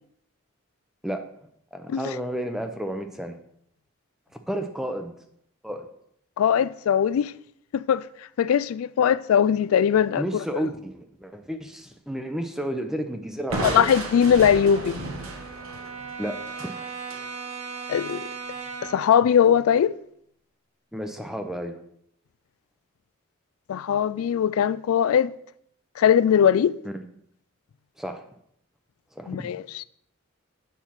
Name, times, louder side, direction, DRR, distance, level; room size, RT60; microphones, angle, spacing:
voice 1, 1.7-3.4 4.5-5.1 5.6-5.9 10.2-13.9 16.2-16.7 20.9-21.8 26.8-27.0 28.0-28.2 29.2-29.5, equal, ahead, 0.6 m, -32 dB
voice 2, 6.4-7.3 7.7-8.0 8.4-10.2 13.7-15.0 17.9-18.3 18.8-20.0 23.7-25.3 26.0-26.8 29.3-29.8, left 8 dB, 90° left, 0.3 m, -20 dB
Crushing, 13.5-17.3, right 2 dB, 85° right, 1.5 m, -33 dB
Brass instrument, 13.6-19.1, right 5 dB, 30° right, 1.4 m, -38 dB
8.5 x 4.4 x 5.7 m
head